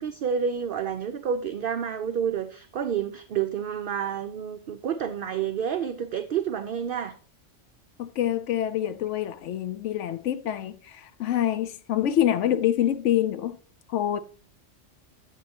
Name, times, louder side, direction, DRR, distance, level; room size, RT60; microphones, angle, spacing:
voice 1, 0.0-7.2 8.8-8.9, right 8 dB, 55° right, 0.7 m, -29 dB
voice 2, 8.0-13.6 13.9-14.2, left 11 dB, 80° left, 1.0 m, -26 dB
12.0 x 7.5 x 2.8 m
omnidirectional pair, 1.2 m